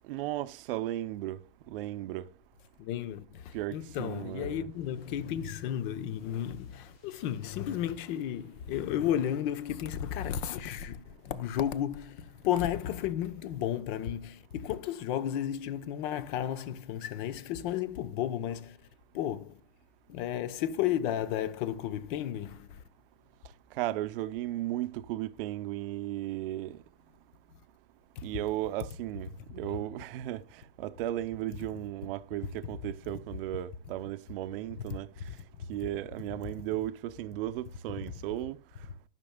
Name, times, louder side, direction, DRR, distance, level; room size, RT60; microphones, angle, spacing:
voice 1, 0.1-1.4 1.7-2.3 3.5-4.7 23.7-26.8 28.2-35.1 35.7-38.6, right 14 dB, 65° right, 0.6 m, -35 dB
voice 2, 2.8-18.8 19.1-19.6 20.1-22.8 28.2-28.3 34.9-35.0, left 10 dB, 55° left, 0.9 m, -33 dB
sound 1, 4.6-9.5, left 2 dB, 80° left, 1.9 m, -59 dB
12.5 x 5.9 x 2.2 m
supercardioid pair, 125°, 30 cm